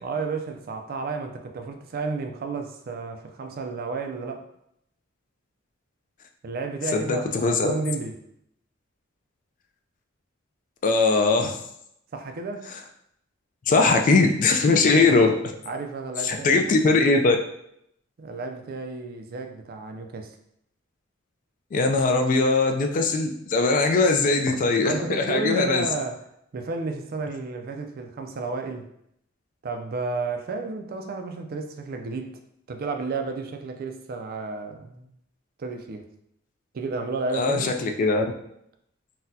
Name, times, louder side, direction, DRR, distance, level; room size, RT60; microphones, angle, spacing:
voice 1, 0.0-4.5 6.4-8.1 12.1-12.7 14.7-15.2 15.7-16.8 18.2-20.3 24.8-26.2 26.5-28.9 29.6-32.4 32.7-35.1 35.6-36.0 36.7-37.7, right 3 dB, 50° right, 6 dB, 0.4 m, -32 dB
voice 2, 6.9-7.7 10.8-11.6 13.7-15.3 16.2-17.4 21.7-25.9 37.3-38.3, left 3 dB, 40° left, 5 dB, 0.3 m, -20 dB
4.0 x 2.2 x 2.6 m, 0.75 s
head